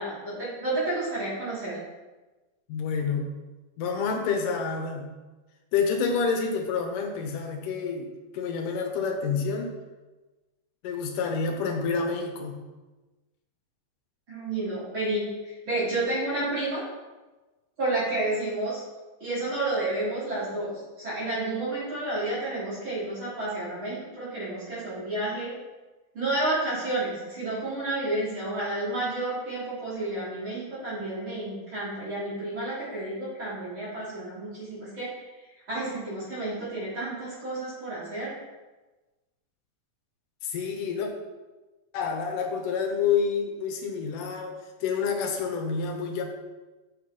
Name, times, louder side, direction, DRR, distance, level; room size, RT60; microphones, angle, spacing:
voice 1, 0.0-1.8 14.3-16.8 17.8-18.8 19.2-25.5 26.1-35.1 35.7-38.3, right 2 dB, 35° right, -9 dB, 3.4 m, -30 dB
voice 2, 2.7-3.3 3.8-5.1 5.7-8.1 8.3-9.7 10.8-12.6 40.4-41.1 41.9-44.5 44.8-46.2, left 5 dB, 70° left, 3 dB, 2.4 m, -28 dB
7.5 x 7.0 x 4.2 m, 1.2 s
omnidirectional pair, 4.2 m